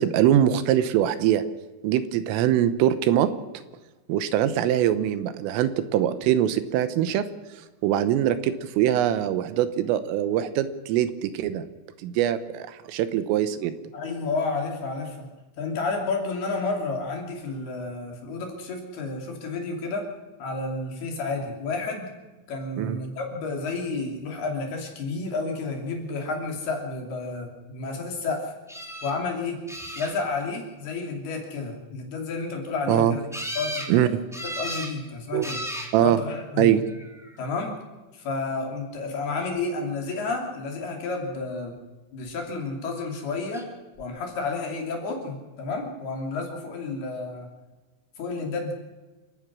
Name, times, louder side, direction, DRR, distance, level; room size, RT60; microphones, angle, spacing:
voice 1, 0.0-1.4 1.8-3.3 4.1-7.3 7.8-11.6 12.0-13.7 22.8-23.0 32.9-33.2 33.9-34.1 35.3-35.5 35.9-36.2 36.6-36.8, right 11 dB, 80° right, 12 dB, 3.5 m, -22 dB
voice 2, 13.9-15.3 15.6-20.1 20.4-22.1 22.5-28.5 29.0-29.6 30.0-33.2 33.5-35.6 36.0-36.8 37.4-37.8 38.2-41.8 42.1-43.7 44.0-47.5 48.2-48.7, left 3 dB, 55° left, 2 dB, 4.7 m, -31 dB
sound 1, 28.7-29.1 29.7-30.4 33.3-33.9 34.3-34.9 35.4-35.9 36.8-37.3 43.5-43.6 44.0-44.1, equal, 5° right, 0.4 m, -34 dB
28.0 x 16.5 x 6.3 m, 1.2 s
omnidirectional pair, 6.0 m